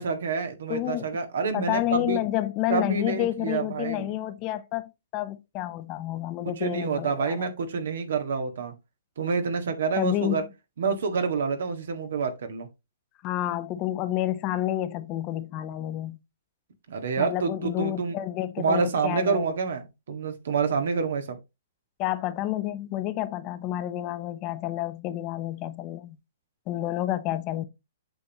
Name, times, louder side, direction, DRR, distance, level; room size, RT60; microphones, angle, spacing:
voice 1, 0.0-2.2 2.7-4.1 6.6-8.7 9.2-10.4 10.8-12.7 16.9-18.2 18.6-21.4, right 5 dB, 75° right, 1.8 m, -28 dB
voice 2, 0.7-1.0 1.5-7.5 9.9-10.4 13.2-16.2 17.2-19.5 22.0-26.2 26.7-27.6, left 14 dB, 35° left, 0.8 m, -29 dB
8.1 x 5.6 x 3.0 m
hypercardioid pair, 140°, 0 cm